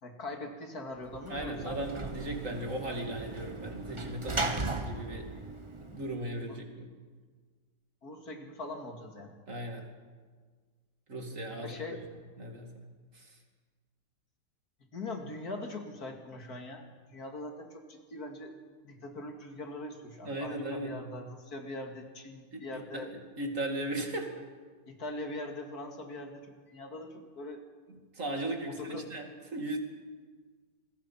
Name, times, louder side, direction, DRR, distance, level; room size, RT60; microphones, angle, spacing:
voice 1, 0.0-1.8 6.5-6.6 8.0-9.4 11.6-12.0 14.9-18.5 18.8-23.1 24.9-27.6 28.7-29.1, left 2 dB, 65° left, 3 dB, 2.9 m, -42 dB
Sliding door / Slam, 1.0-6.4, right 2 dB, 20° right, 1.3 m, -37 dB
voice 2, 1.3-5.3 5.9-6.9 9.5-9.9 11.1-11.8 12.4-12.7 13.1-13.3 20.2-21.0 22.5-23.0 23.4-24.3 27.9-29.8, right 1 dB, 50° right, 3 dB, 3.0 m, -37 dB
28.5 x 22.0 x 5.9 m, 1.5 s
omnidirectional pair, 1.8 m